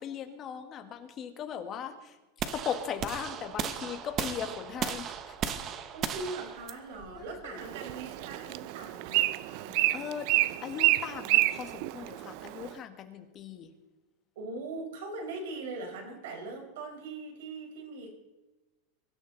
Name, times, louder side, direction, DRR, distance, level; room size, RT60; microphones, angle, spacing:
voice 1, 0.0-2.2 2.5-5.4 7.1-7.6 9.9-10.3 10.6-13.7, left 8 dB, 25° left, 6 dB, 1.7 m, -38 dB
sound 1, 2.4-8.5, right 8 dB, 30° right, 1.0 m, -36 dB
voice 2, 4.4-4.9 5.9-9.8 14.3-18.1, right 3 dB, 75° right, 3 dB, 5.0 m, -41 dB
Bird, 7.6-12.7, right 17 dB, 50° right, 0.6 m, -29 dB
23.0 x 12.5 x 4.1 m, 1.1 s
supercardioid pair, 165°, 0 cm